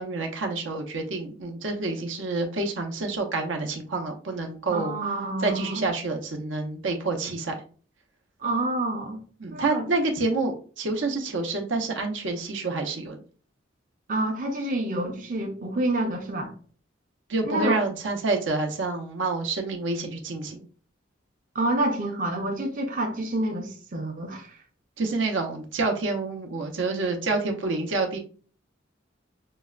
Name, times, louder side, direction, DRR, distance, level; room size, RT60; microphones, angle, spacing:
voice 1, 0.0-4.9 5.4-7.6 9.4-13.2 17.3-20.7 25.0-28.2, right 3 dB, 80° right, 0.7 m, -28 dB
voice 2, 4.7-5.8 8.4-9.2 9.5-9.9 14.1-16.5 17.4-17.8 21.5-24.5, right 1 dB, 45° right, 0.6 m, -28 dB
5.5 x 2.1 x 2.4 m
head